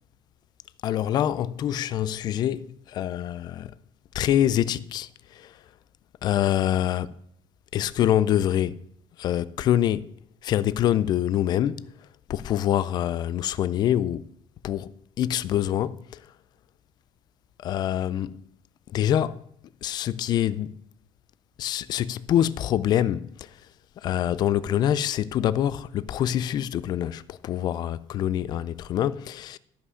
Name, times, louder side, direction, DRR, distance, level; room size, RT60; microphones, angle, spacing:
voice 1, 0.8-2.7 2.9-3.7 4.1-5.1 6.2-7.1 7.7-8.8 9.2-10.1 10.4-11.9 12.3-14.2 14.6-16.0 17.6-18.4 18.9-19.4 19.8-20.7 21.6-23.3 24.0-29.6, left 11 dB, 45° left, 0.4 m, -25 dB
12.5 x 5.6 x 6.3 m
cardioid pair, 165°, 10 cm